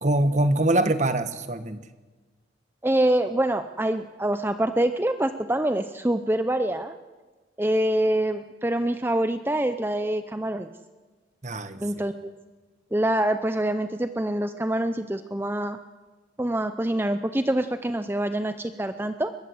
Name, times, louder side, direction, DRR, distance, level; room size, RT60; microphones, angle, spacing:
voice 1, 0.0-1.8 11.4-11.8, right 1 dB, 40° right, 10 dB, 1.2 m, -23 dB
voice 2, 2.8-6.9 7.6-10.7 11.8-12.3 12.9-15.8 16.4-19.3, right 1 dB, 10° right, 9 dB, 0.6 m, -25 dB
22.5 x 21.0 x 7.9 m, 1.3 s
head